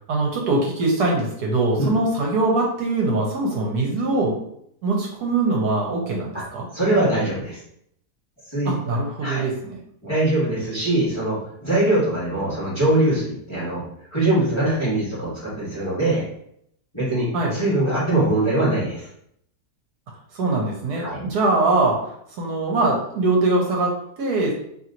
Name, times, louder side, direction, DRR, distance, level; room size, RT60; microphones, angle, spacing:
voice 1, 0.1-4.3 4.8-6.7 8.7-9.8 17.3-17.6 20.3-24.5, right 2 dB, 70° right, -1 dB, 1.3 m, -22 dB
voice 2, 6.7-7.6 8.5-8.9 9.2-9.4 10.0-13.8 14.1-16.2 16.9-19.1 21.0-21.2, right 1 dB, 20° left, -8 dB, 1.3 m, -22 dB
3.0 x 3.0 x 3.8 m, 0.71 s
omnidirectional pair, 1.8 m